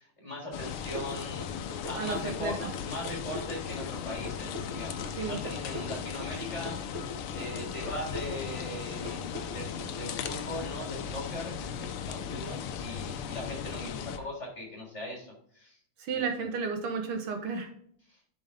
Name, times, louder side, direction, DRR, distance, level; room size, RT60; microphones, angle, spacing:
voice 1, 0.0-1.5 1.9-15.8 16.1-16.5 18.1-18.2, left 1 dB, 15° left, -3 dB, 3.8 m, -40 dB
sound 1, 0.5-14.2, left 7 dB, 80° left, 1.6 m, -37 dB
sound 2, 1.0-10.3, left 1 dB, 35° right, 1.7 m, -42 dB
voice 2, 2.0-2.5 5.2-5.4 16.0-17.7, right 5 dB, 80° right, 4 dB, 2.2 m, -32 dB
11.0 x 5.3 x 3.7 m, 0.63 s
omnidirectional pair, 2.4 m